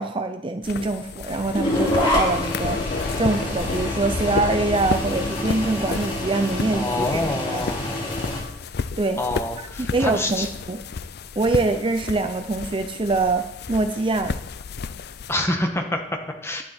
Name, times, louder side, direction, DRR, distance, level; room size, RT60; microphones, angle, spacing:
voice 1, 0.0-7.7 9.0-9.2 9.8-10.8 11.4-14.4, right 3 dB, 30° right, 8 dB, 0.6 m, -24 dB
sound 1, 0.6-15.3, left 4 dB, 60° left, 0.5 m, -32 dB
sound 2, 1.5-8.4, left 1 dB, 30° left, 4.8 m, -27 dB
voice 2, 6.7-8.0 9.2-10.5 15.3-16.6, left 1 dB, 15° left, 3 dB, 1.5 m, -27 dB
11.0 x 11.0 x 4.4 m, 0.81 s
head